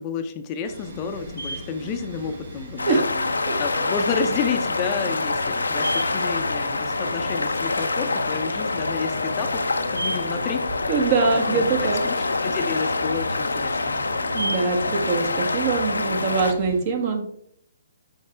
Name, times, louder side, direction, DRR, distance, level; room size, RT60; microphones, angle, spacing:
voice 1, 0.0-3.1 3.4-9.6 9.9-11.1 11.5-14.0, left 6 dB, 30° left, 7 dB, 0.5 m, -31 dB
sound 1, 0.6-16.8, right 1 dB, 65° right, 2.3 m, -36 dB
sound 2, 2.8-16.5, left 3 dB, 80° left, 0.5 m, -26 dB
voice 2, 10.9-12.0 14.3-17.3, right 4 dB, 40° right, 5 dB, 1.2 m, -23 dB
6.4 x 4.5 x 3.3 m, 0.69 s
figure-of-eight pair, 130°, 0 cm